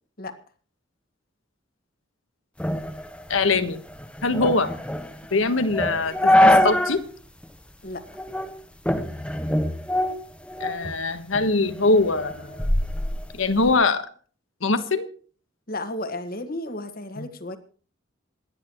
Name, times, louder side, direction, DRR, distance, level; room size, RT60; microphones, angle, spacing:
sound 1, 2.6-7.1 7.4-7.5 8.1-8.5 8.9-10.9 11.3-13.8, left 1 dB, 5° left, 1.1 m, -23 dB
voice 1, 3.3-3.8 4.2-4.8 5.3-7.0 10.6-12.7 13.3-14.0 14.6-15.1 17.2-17.3, left 3 dB, 85° left, 10 dB, 1.4 m, -22 dB
voice 2, 15.7-17.6, left 1 dB, 50° left, 8 dB, 1.8 m, -33 dB
27.5 x 10.5 x 3.1 m, 0.42 s
head